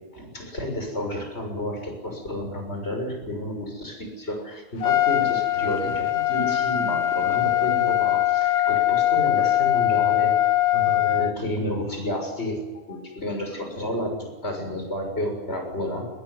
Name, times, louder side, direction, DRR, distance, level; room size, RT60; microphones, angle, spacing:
voice 1, 0.1-10.4 10.7-12.6 12.9-16.0, left 1 dB, 40° left, 3 dB, 6.9 m, -31 dB
Trumpet, 4.8-11.3, left 13 dB, 70° left, 1.7 m, -22 dB
21.5 x 21.0 x 9.8 m, 1.2 s
omnidirectional pair, 1.7 m